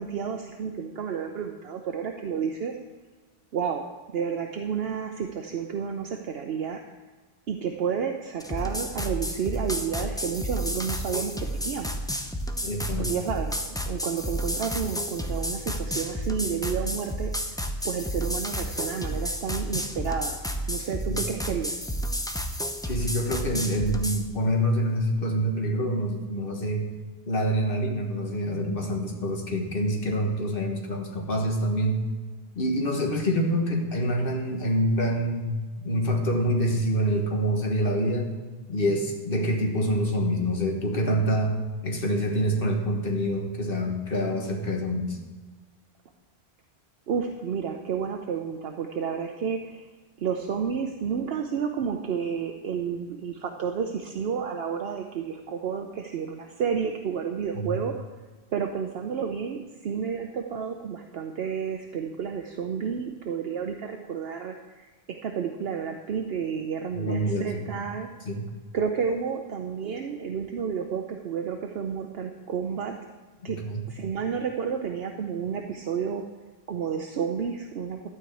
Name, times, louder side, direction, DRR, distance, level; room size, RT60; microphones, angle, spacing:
voice 1, 0.0-2.7 3.5-3.8 4.1-6.8 7.5-12.0 13.0-17.3 17.8-21.7 47.1-49.9 50.2-58.1 58.5-68.1 68.7-72.9 73.4-73.6 73.9-76.2 76.7-78.1, right 7 dB, 70° right, 4 dB, 0.9 m, -31 dB
sound 1, 8.4-24.2, equal, 5° left, 0.5 m, -31 dB
voice 2, 12.6-13.1 21.1-21.2 22.8-26.9 27.3-32.0 32.5-38.3 38.7-41.6 41.8-45.2 57.5-57.8 66.9-67.8 68.2-68.4 73.4-73.8, equal, 55° left, 2 dB, 1.6 m, -26 dB
12.5 x 4.7 x 8.3 m, 1.4 s
omnidirectional pair, 1.1 m